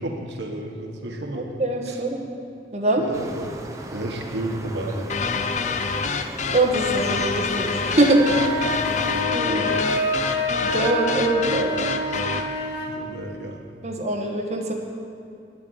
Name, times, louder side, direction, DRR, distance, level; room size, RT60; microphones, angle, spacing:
voice 1, 0.0-1.5 1.9-2.0 2.9-3.5 3.9-5.1 9.7-9.8 12.1-12.6 12.9-13.6, right 1 dB, 80° right, 2 dB, 1.3 m, -32 dB
voice 2, 1.3-2.2 2.7-3.0 6.5-8.3 8.5-8.7 9.3-9.9 10.6-11.8 13.8-14.7, right 2 dB, 40° right, -1 dB, 1.3 m, -23 dB
sound 1, 3.1-9.3, right 1 dB, 20° right, 0.7 m, -38 dB
sound 2, 5.1-12.5, left 5 dB, 40° left, 0.5 m, -27 dB
sound 3, 8.0-13.0, left 1 dB, 75° left, 1.6 m, -27 dB
9.4 x 8.4 x 8.7 m, 2.4 s
head